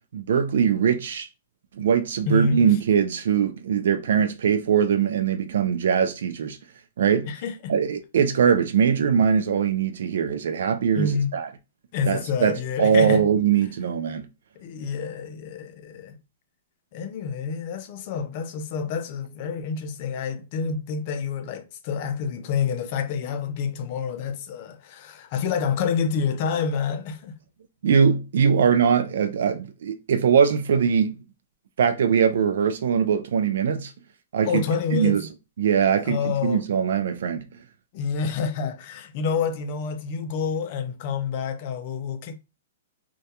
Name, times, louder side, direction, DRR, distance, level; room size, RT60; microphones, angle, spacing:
voice 1, 0.1-1.3 1.8-6.6 7.0-7.3 7.7-11.5 12.1-14.3 27.8-31.2 31.8-33.9 34.3-34.7 34.9-35.3 35.6-37.5, right 7 dB, 70° right, 0.3 m, -21 dB
voice 2, 2.3-2.6 7.2-7.7 10.9-11.3 11.9-13.2 14.6-16.2 16.9-27.3 34.5-35.2 36.0-36.6 37.9-42.3, left 5 dB, 40° left, 0.4 m, -28 dB
2.2 x 2.2 x 2.7 m
hypercardioid pair, 155°, 0 cm